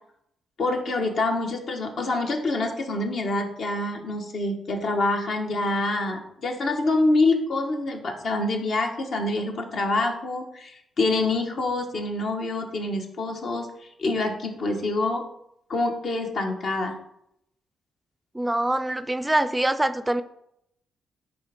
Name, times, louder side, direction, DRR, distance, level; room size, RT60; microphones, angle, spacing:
voice 1, 0.6-13.7 14.0-15.2 15.7-16.9, left 2 dB, 65° left, 3 dB, 1.2 m, -26 dB
voice 2, 18.3-20.2, right 1 dB, 15° right, 12 dB, 0.4 m, -24 dB
5.5 x 3.6 x 5.1 m, 0.75 s
cardioid pair, 70°, 0 cm